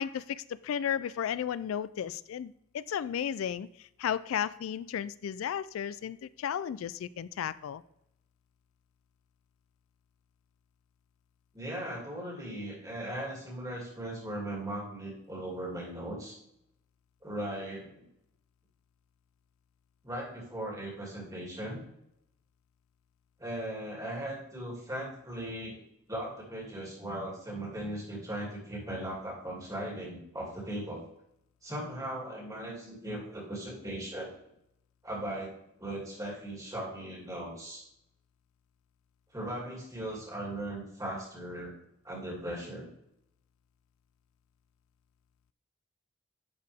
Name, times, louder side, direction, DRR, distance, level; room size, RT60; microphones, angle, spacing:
voice 1, 0.0-3.7 4.0-7.8, left 8 dB, 85° left, 16 dB, 0.3 m, -34 dB
voice 2, 11.5-16.4 17.2-18.0 20.0-21.8 23.4-25.7 26.1-31.0 31.6-34.3 35.0-35.5 35.8-37.8 39.3-41.7 42.0-42.9, right 1 dB, 15° right, -4 dB, 2.6 m, -38 dB
11.0 x 4.8 x 3.5 m, 0.78 s
head